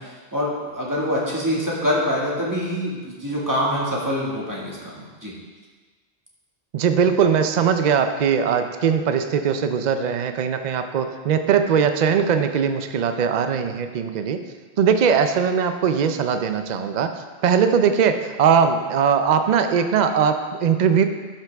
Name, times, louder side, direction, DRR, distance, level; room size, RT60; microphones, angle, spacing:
voice 1, 0.0-5.3, equal, 20° right, -5 dB, 1.8 m, -25 dB
voice 2, 6.7-14.4 14.8-17.1 17.4-21.0, right 7 dB, 50° right, 8 dB, 0.6 m, -20 dB
11.5 x 6.0 x 3.4 m, 1.4 s
omnidirectional pair, 1.1 m